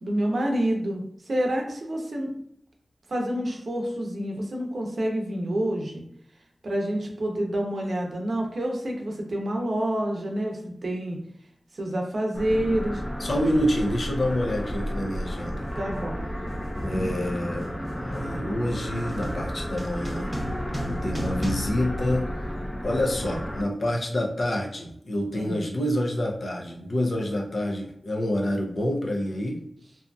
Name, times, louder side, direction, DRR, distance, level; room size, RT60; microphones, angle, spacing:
voice 1, 0.0-2.3 3.1-6.0 6.6-11.2 11.7-13.0 15.8-16.3 25.3-25.6, right 1 dB, 70° right, 1 dB, 0.6 m, -28 dB
sound 1, 12.3-23.6, equal, 15° left, 0.6 m, -32 dB
sound 2, 12.7-12.8 13.7-14.0 14.3-22.8, equal, 20° right, 1.0 m, -37 dB
voice 2, 13.2-15.7 16.8-20.3 20.9-22.3 22.8-29.6, left 1 dB, 70° left, 0 dB, 0.6 m, -27 dB
2.7 x 2.5 x 2.2 m, 0.70 s
wide cardioid pair, 60°, 0 cm